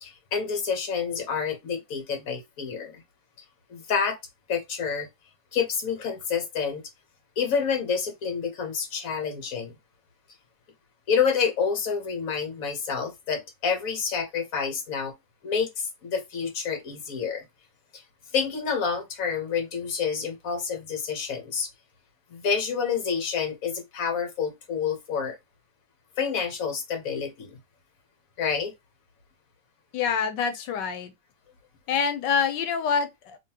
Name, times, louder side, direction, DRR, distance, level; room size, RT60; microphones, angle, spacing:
voice 1, 0.0-3.0 3.7-4.2 4.5-5.1 5.5-6.8 7.4-9.7 11.1-15.1 15.4-17.4 17.9-18.0 18.3-21.7 22.3-25.4 26.2-27.6 28.4-28.7, left 6 dB, 55° left, 1.3 m, -28 dB
voice 2, 29.9-31.1 31.9-33.4, left 6 dB, 90° left, 1.4 m, -26 dB
3.7 x 3.1 x 2.8 m
omnidirectional pair, 1.9 m